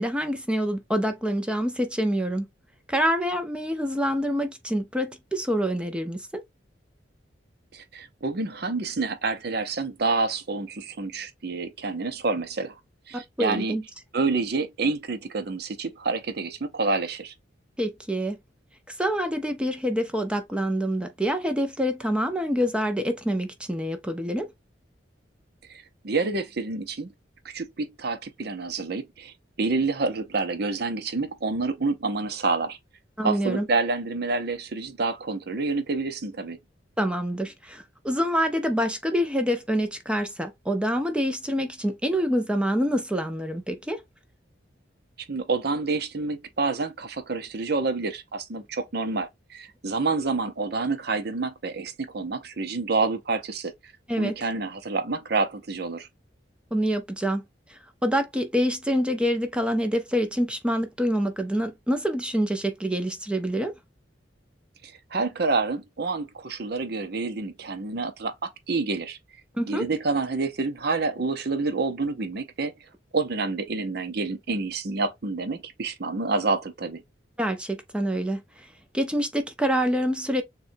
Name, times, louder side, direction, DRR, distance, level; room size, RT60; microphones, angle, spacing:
voice 1, 0.0-2.5 2.9-6.4 13.1-13.8 17.8-18.4 19.0-24.5 33.2-33.7 37.0-44.0 54.1-54.4 56.7-57.4 57.7-63.7 69.6-69.8 77.4-78.7 78.9-80.4, equal, 5° right, 0.5 m, -26 dB
voice 2, 7.7-12.7 13.1-13.8 14.1-17.3 25.7-27.1 27.4-32.8 33.2-36.6 45.3-53.7 54.2-56.1 64.8-69.2 69.7-72.7 73.1-77.0, right 3 dB, 55° right, 0.7 m, -28 dB
6.6 x 2.3 x 2.6 m
head